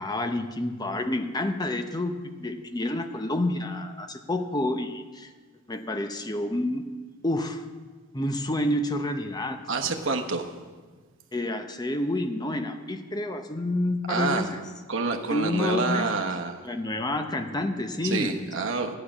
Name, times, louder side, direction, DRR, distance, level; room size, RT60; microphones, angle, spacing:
voice 1, 0.0-5.3 5.7-6.9 7.2-7.6 8.1-9.6 11.3-14.6 15.3-16.1 16.6-18.4, left 1 dB, 20° left, 7 dB, 0.7 m, -29 dB
voice 2, 9.7-10.5 14.1-14.5 14.9-16.6 18.0-19.0, right 3 dB, 55° right, 4 dB, 1.0 m, -28 dB
12.0 x 10.0 x 6.0 m, 1.4 s
head